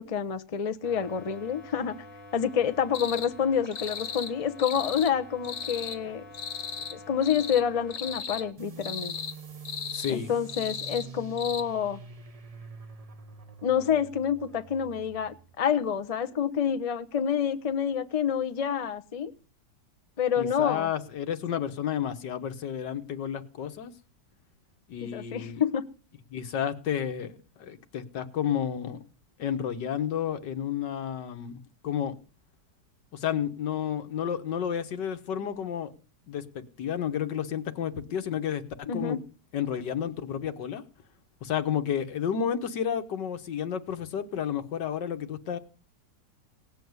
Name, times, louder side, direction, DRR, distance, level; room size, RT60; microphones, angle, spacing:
voice 1, 0.0-2.0 2.3-6.2 6.9-9.1 10.1-12.0 13.6-19.3 20.2-20.9 21.5-21.6 25.0-25.8 38.9-39.2, left 8 dB, 35° left, 11 dB, 0.6 m, -28 dB
sound 1, 0.8-8.5, left 1 dB, 15° left, 1.8 m, -47 dB
sound 2, 2.9-3.3 3.7-4.3 4.6-5.1 5.4-6.0 6.3-7.0 7.2-7.6 7.9-8.4 8.8-9.3 9.6-10.1 10.5-11.1 11.4-11.6, left 7 dB, 60° left, 1.6 m, -36 dB
sound 3, 8.6-15.8, right 5 dB, 30° right, 0.7 m, -46 dB
voice 2, 9.9-10.3 20.4-23.9 24.9-25.6 26.3-29.0 29.4-32.1 33.1-35.9 36.3-39.2 39.5-40.8 41.4-45.6, left 8 dB, 85° left, 9 dB, 1.9 m, -31 dB
18.0 x 7.2 x 9.5 m, 0.39 s
omnidirectional pair, 1.8 m